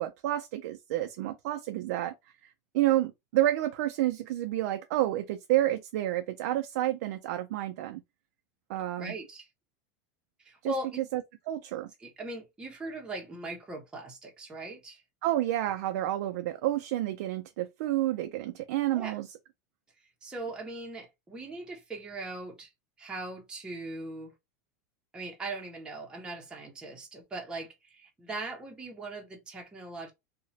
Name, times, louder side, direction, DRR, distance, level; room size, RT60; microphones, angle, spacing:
voice 1, 0.0-2.1 2.7-8.0 8.7-9.1 10.6-11.2 11.5-11.9 15.2-19.3, right 14 dB, 70° right, 0.3 m, -29 dB
voice 2, 9.0-9.5 10.5-10.9 12.0-15.0 18.9-19.2 20.2-22.7 23.0-24.3 25.1-30.1, right 2 dB, 10° right, 0.7 m, -40 dB
2.9 x 2.1 x 2.6 m
supercardioid pair, 145°, 9 cm